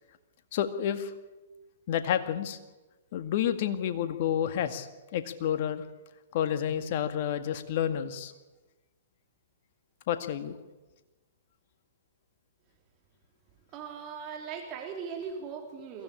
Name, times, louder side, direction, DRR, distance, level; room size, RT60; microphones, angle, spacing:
voice 1, 0.5-1.1 1.9-2.6 3.1-5.8 6.3-8.3 10.1-10.6, left 9 dB, 50° left, 9 dB, 1.9 m, -30 dB
voice 2, 13.7-16.0, right 6 dB, 35° right, 2 dB, 3.5 m, -39 dB
22.5 x 16.5 x 8.6 m, 1.2 s
figure-of-eight pair, 120°, 0 cm